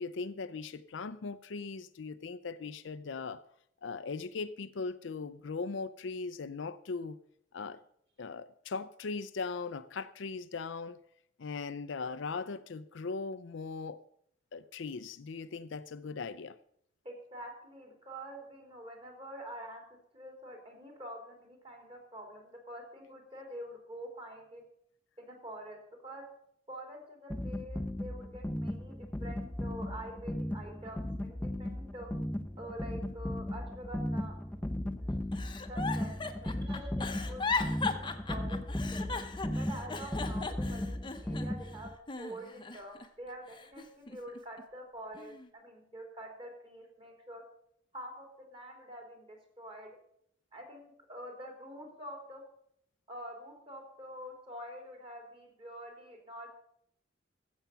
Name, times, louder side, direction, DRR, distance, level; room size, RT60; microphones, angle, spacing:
voice 1, 0.0-3.4 3.8-7.2 7.5-7.8 8.2-11.0 11.4-14.0 14.5-16.6, left 4 dB, 70° left, 0.5 m, -39 dB
voice 2, 17.0-19.8 20.1-24.6 25.2-26.2 26.7-32.1 32.6-34.4 34.9-35.4 35.7-39.0 39.5-47.4 47.9-49.9 50.5-52.4 53.1-56.6, right 1 dB, 30° right, 3.2 m, -46 dB
sound 1, 27.3-42.0, left 1 dB, 10° left, 0.5 m, -36 dB
Giggle, 35.3-41.7 42.1-43.1 43.5-44.6 45.1-45.5, left 4 dB, 25° left, 0.8 m, -38 dB
15.0 x 7.3 x 5.7 m
head